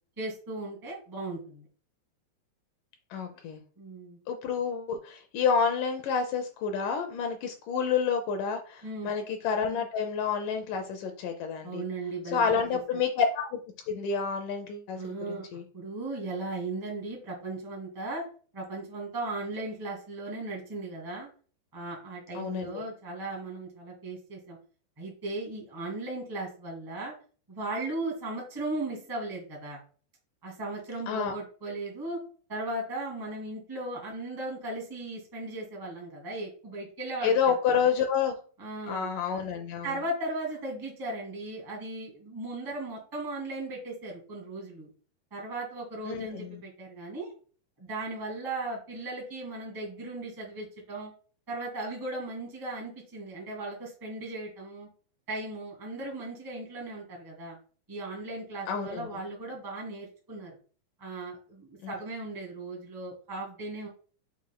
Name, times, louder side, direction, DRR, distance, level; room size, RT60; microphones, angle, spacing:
voice 1, 0.2-1.7 3.8-4.2 8.8-9.1 11.6-12.8 14.9-15.5 15.7-18.2 18.5-21.3 21.7-24.6 25.0-27.1 27.5-29.8 30.4-32.2 32.5-37.5 37.8-37.9 38.6-39.1 39.8-44.9 45.3-47.3 47.8-51.1 51.5-54.9 55.3-57.6 57.9-60.6 61.0-63.9, right 2 dB, 10° right, -2 dB, 1.3 m, -37 dB
voice 2, 3.1-3.6 4.3-11.8 12.3-13.6 13.9-15.6 22.3-22.8 31.1-31.3 37.2-38.3 38.9-39.9 46.1-46.6 58.7-59.1 61.8-61.9, left 6 dB, 90° left, 5 dB, 1.8 m, -29 dB
7.2 x 6.1 x 2.2 m, 0.41 s
omnidirectional pair, 4.6 m